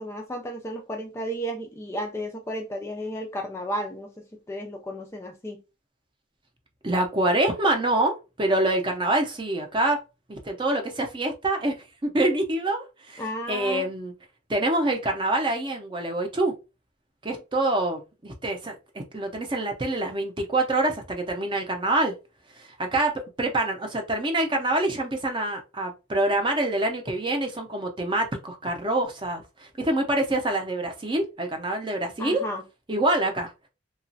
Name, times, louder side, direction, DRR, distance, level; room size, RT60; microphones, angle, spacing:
voice 1, 0.0-5.6 13.2-13.9 32.2-32.6, equal, 15° left, 0.3 m, -33 dB
voice 2, 6.8-10.0 10.3-11.7 12.0-13.2 13.5-14.1 14.5-16.5 17.2-22.1 22.6-32.4 32.9-33.5, right 1 dB, 25° right, 0.6 m, -26 dB
2.9 x 2.4 x 2.7 m
head